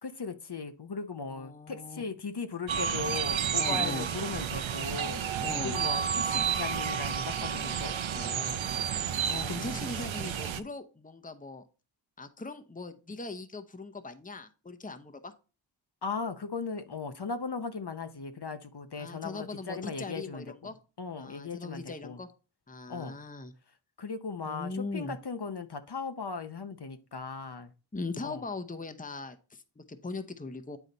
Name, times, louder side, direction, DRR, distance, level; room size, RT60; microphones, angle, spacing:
voice 1, 0.0-5.2 5.6-8.6 9.4-9.6 16.0-22.2 22.9-23.2 24.0-27.7 28.2-28.4, left 4 dB, 55° left, 0.8 m, -38 dB
voice 2, 1.3-2.0 3.6-4.1 5.4-5.8 9.2-11.6 12.2-15.3 19.0-20.8 21.2-22.3 22.7-23.5 24.4-25.2 27.9-30.8, left 3 dB, 20° left, 0.7 m, -40 dB
sound 1, 2.7-10.6, right 8 dB, 80° right, 0.6 m, -31 dB
9.2 x 4.0 x 4.0 m
wide cardioid pair, 50°, 47 cm